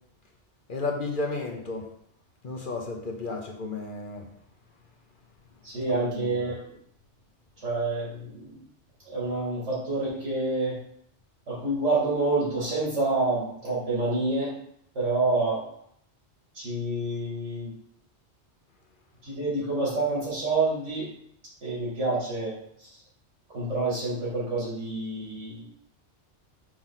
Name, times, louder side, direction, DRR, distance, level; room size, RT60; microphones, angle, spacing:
voice 1, 0.7-1.9 2.4-4.3 5.9-6.4, left 3 dB, 50° left, 2 dB, 1.0 m, -33 dB
voice 2, 5.6-6.6 7.6-8.6 9.1-10.7 11.5-14.5 14.9-15.6 16.5-17.7 19.2-21.1 21.6-22.5 23.5-25.7, right 2 dB, 80° right, -6 dB, 2.8 m, -28 dB
6.0 x 3.4 x 5.7 m, 0.71 s
omnidirectional pair, 1.2 m